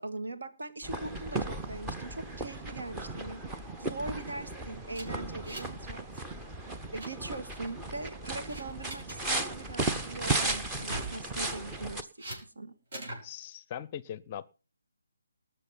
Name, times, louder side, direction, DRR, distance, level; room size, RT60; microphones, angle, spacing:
voice 1, 0.0-6.0 6.9-12.1 12.6-12.7, right 2 dB, 65° right, 2.1 m, -41 dB
sound 1, 0.8-12.0, right 2 dB, 10° right, 0.9 m, -35 dB
sound 2, 4.9-5.8 6.1-6.3 6.7-7.1 7.7-8.0 8.5-9.2 10.7-11.2 12.2-12.4 12.9-13.2, right 1 dB, 50° right, 6.8 m, -41 dB
voice 2, 13.2-14.5, left 9 dB, 25° left, 0.6 m, -40 dB
20.0 x 6.8 x 5.7 m
figure-of-eight pair, 145°, 0 cm